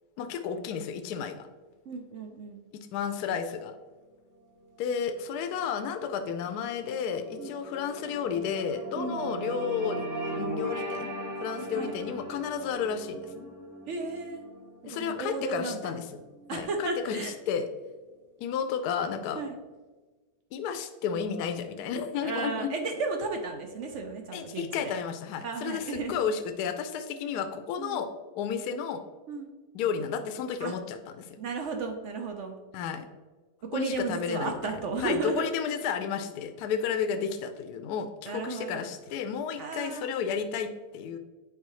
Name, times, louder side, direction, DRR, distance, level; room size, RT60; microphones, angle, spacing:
voice 1, 0.2-1.5 2.7-3.8 4.8-10.1 10.3-11.1 11.4-13.5 14.8-16.1 16.5-17.7 18.4-19.4 20.5-22.7 24.3-28.1 28.3-29.0 29.7-31.4 32.7-33.1 33.7-41.2, left 7 dB, 75° left, 8 dB, 1.1 m, -32 dB
voice 2, 1.9-2.6 7.4-7.5 8.9-9.3 11.6-12.0 13.9-14.4 14.8-15.9 16.5-17.3 19.3-19.6 22.2-24.9 25.4-26.2 27.8-28.0 29.3-29.5 30.6-30.7 31.4-32.6 33.6-35.5 38.2-38.9 39.6-40.1, right 3 dB, 60° right, 4 dB, 0.8 m, -34 dB
sound 1, 4.6-17.2, right 1 dB, 20° right, 0.5 m, -39 dB
8.2 x 4.8 x 3.1 m, 1.3 s
omnidirectional pair, 1.8 m